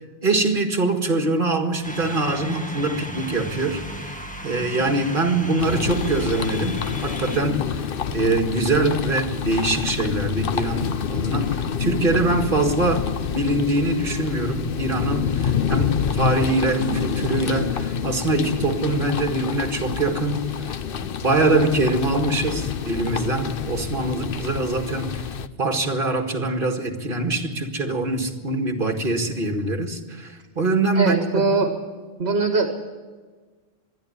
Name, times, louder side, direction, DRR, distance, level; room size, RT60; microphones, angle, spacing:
voice 1, 0.2-4.1 4.4-7.8 8.1-13.0 13.3-20.8 21.0-25.1 25.6-31.5, right 2 dB, 55° right, 5 dB, 2.1 m, -23 dB
sound 1, 1.8-7.4, equal, 5° left, 1.9 m, -35 dB
sound 2, 5.6-25.5, left 7 dB, 60° left, 0.9 m, -27 dB
voice 2, 30.9-31.7 32.2-32.7, right 4 dB, 70° right, 5 dB, 1.8 m, -21 dB
25.0 x 11.0 x 9.7 m, 1.4 s
omnidirectional pair, 1.1 m